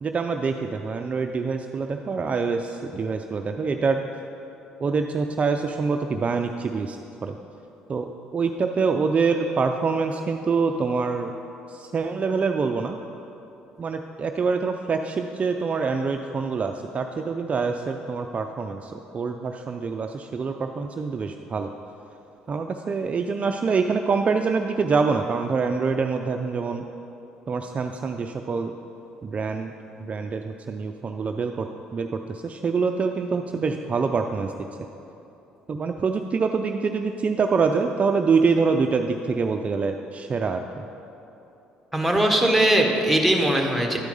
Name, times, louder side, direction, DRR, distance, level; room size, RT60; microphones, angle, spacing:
voice 1, 0.0-4.1 4.8-7.4 7.9-11.3 11.7-13.0 13.8-21.7 22.5-26.8 27.5-28.7 29.2-29.7 30.0-31.7 31.9-34.7 35.7-40.9, right 4 dB, 35° right, 5 dB, 0.4 m, -25 dB
voice 2, 41.9-44.0, right 1 dB, ahead, 2 dB, 1.2 m, -20 dB
10.5 x 4.6 x 5.4 m, 2.9 s
supercardioid pair, 70°, 4 cm